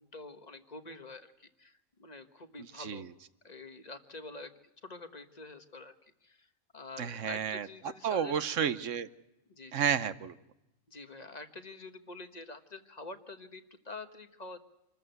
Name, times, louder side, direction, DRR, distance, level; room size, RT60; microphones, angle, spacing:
voice 1, 0.0-3.1 3.4-4.5 4.8-8.4 9.5-9.9 10.9-14.6, left 3 dB, 35° left, 1.4 m, -47 dB
voice 2, 2.8-3.1 7.0-7.7 8.0-9.1 9.7-10.4, right 8 dB, 75° right, 1.2 m, -31 dB
27.0 x 14.0 x 7.9 m
omnidirectional pair, 1.3 m